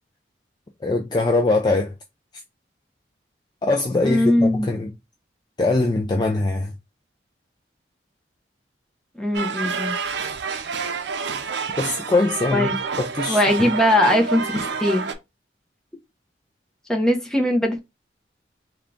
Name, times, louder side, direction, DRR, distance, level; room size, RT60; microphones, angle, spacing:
voice 1, 0.8-1.9 3.6-4.9 5.6-6.7 11.8-13.4, left 2 dB, 25° left, 0.4 m, -22 dB
voice 2, 4.0-4.7 9.2-10.0 12.5-12.8 13.3-15.1 16.9-17.8, left 1 dB, 5° left, 0.8 m, -20 dB
sound 1, 9.3-15.1, right 5 dB, 70° right, 0.5 m, -28 dB
3.6 x 2.3 x 3.6 m
head